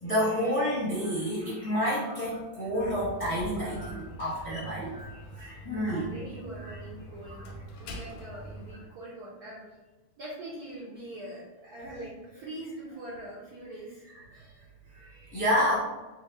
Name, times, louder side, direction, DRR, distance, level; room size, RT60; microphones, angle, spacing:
voice 1, 0.0-6.0 6.7-6.8 14.1-14.5 14.9-15.7, equal, 30° left, -10 dB, 0.6 m, -29 dB
Slam, 2.7-8.9, right 1 dB, 85° left, 1.5 m, -44 dB
voice 2, 5.9-7.5 7.8-9.8 10.2-14.1, right 1 dB, 70° right, -6 dB, 0.9 m, -43 dB
3.5 x 2.0 x 3.4 m, 1.2 s
omnidirectional pair, 2.4 m